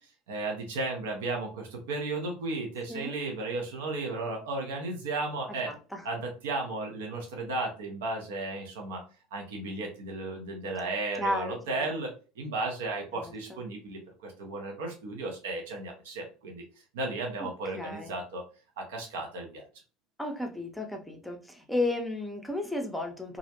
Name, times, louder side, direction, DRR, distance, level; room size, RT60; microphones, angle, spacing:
voice 1, 0.3-5.7 6.0-9.0 9.3-16.6 16.9-18.4 18.8-19.6, right 2 dB, 80° right, 0.7 m, -34 dB
voice 2, 5.7-6.1 11.2-11.9 13.1-13.6 17.4-17.5 17.7-18.1 20.2-23.4, left 2 dB, 5° left, 0.5 m, -33 dB
2.4 x 2.0 x 2.8 m
hypercardioid pair, 80°, 0 cm